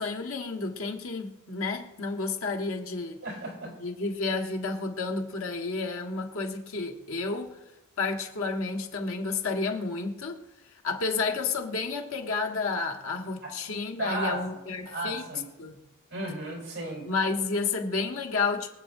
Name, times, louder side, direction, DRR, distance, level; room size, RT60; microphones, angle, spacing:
voice 1, 0.0-3.2 3.8-7.6 8.0-10.4 10.8-15.3 15.6-15.8 17.1-18.7, left 4 dB, 80° left, 1.5 m, -31 dB
voice 2, 3.2-3.7 13.4-13.5 14.0-14.4 14.9-15.5 16.1-17.1, right 1 dB, 60° right, 4.3 m, -34 dB
24.0 x 8.4 x 2.7 m
head